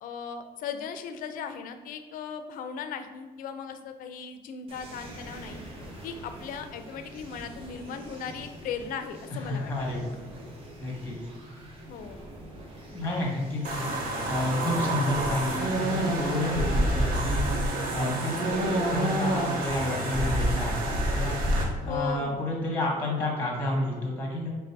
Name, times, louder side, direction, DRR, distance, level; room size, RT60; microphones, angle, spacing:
voice 1, 0.0-5.6 6.0-9.7 11.9-12.2 21.8-22.4, left 6 dB, 65° left, 8 dB, 0.4 m, -37 dB
sound 1, 4.7-18.7, right 1 dB, 35° right, 0.7 m, -46 dB
voice 2, 9.5-10.2 10.8-11.2 12.9-13.9 14.3-17.5 17.9-24.5, left 1 dB, 10° left, -1 dB, 0.9 m, -30 dB
sound 2, 13.6-21.6, right 1 dB, 70° right, 0.8 m, -28 dB
3.4 x 2.6 x 4.4 m, 1.4 s
cardioid pair, 140°, 16 cm